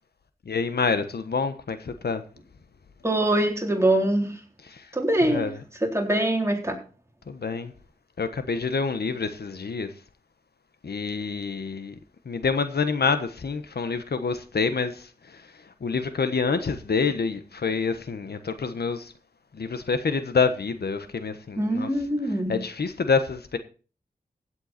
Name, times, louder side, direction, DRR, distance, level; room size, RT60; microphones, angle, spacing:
voice 1, 0.4-2.2 4.6-4.9 5.3-5.5 7.3-7.7 8.2-9.9 10.8-11.9 12.2-19.1 19.5-21.9 22.5-23.6, left 5 dB, 85° left, 1.3 m, -27 dB
voice 2, 3.0-4.4 4.9-5.5 5.9-6.8 21.6-22.6, right 1 dB, 15° right, 3.8 m, -23 dB
16.0 x 8.0 x 4.4 m
wide cardioid pair, 80°, 16 cm